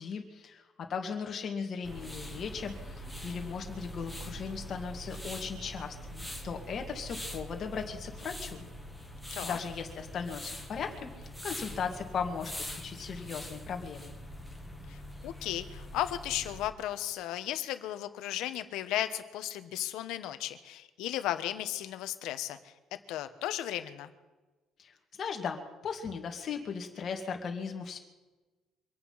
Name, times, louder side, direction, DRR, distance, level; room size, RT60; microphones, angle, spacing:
voice 1, 0.0-8.7 9.4-14.1 24.8-28.0, left 6 dB, 40° left, 3 dB, 2.2 m, -37 dB
sound 1, 1.8-16.7, equal, ahead, 1.6 m, -43 dB
voice 2, 14.9-22.7 23.1-24.1, left 13 dB, 85° left, 10 dB, 1.2 m, -35 dB
25.0 x 8.8 x 5.8 m, 1.2 s
cardioid pair, 160°, 0 cm